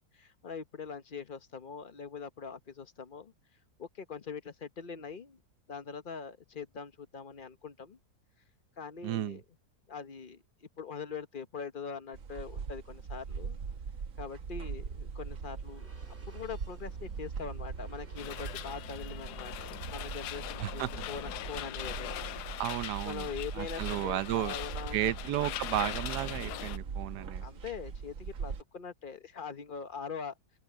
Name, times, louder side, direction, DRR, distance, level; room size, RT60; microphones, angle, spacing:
voice 1, 0.0-3.3 3.8-5.4 5.7-8.0 8.8-9.4 9.9-13.6 14.2-22.4 23.0-25.6 27.4-30.3, left 6 dB, 35° left, 1.0 m, -43 dB
voice 2, 9.0-9.4 20.6-20.9 22.6-24.6 24.9-27.4, right 13 dB, 80° right, 1.2 m, -33 dB
sound 1, 12.1-28.6, right 5 dB, 55° right, 1.5 m, -41 dB
sound 2, 14.8-19.6, right 2 dB, 40° right, 4.0 m, -60 dB
sound 3, 18.2-26.8, left 14 dB, 85° left, 1.2 m, -41 dB
open air
omnidirectional pair, 1.7 m